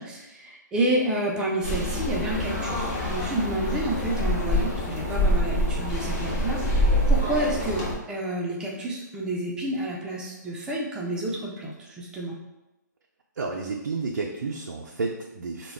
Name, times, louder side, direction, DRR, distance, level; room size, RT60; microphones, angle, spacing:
voice 1, 0.0-12.4, right 1 dB, 5° right, -3 dB, 0.3 m, -30 dB
sound 1, 1.6-7.9, equal, 40° left, 0.8 m, -25 dB
voice 2, 13.4-15.7, right 3 dB, 85° right, -1 dB, 0.4 m, -31 dB
2.2 x 2.0 x 3.3 m, 0.99 s
hypercardioid pair, 145°, 10 cm